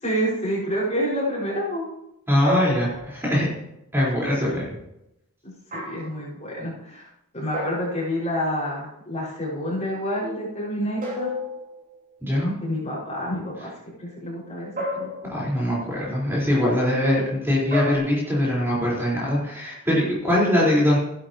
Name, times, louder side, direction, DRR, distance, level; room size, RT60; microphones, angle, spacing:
voice 1, 0.0-1.9 4.3-4.6 5.4-7.1 7.3-11.3 12.6-13.7 14.0-15.3, equal, 30° left, -5 dB, 5.7 m, -28 dB
voice 2, 2.3-3.5 3.9-4.7 12.2-12.5 15.3-21.0, left 1 dB, 10° right, -7 dB, 4.5 m, -22 dB
sound 1, 2.5-3.5 5.7-6.2 7.5-8.4 11.0-12.1 14.8-15.7 17.7-18.0, left 1 dB, 40° right, 5.5 m, -31 dB
15.5 x 11.5 x 3.0 m, 0.83 s
head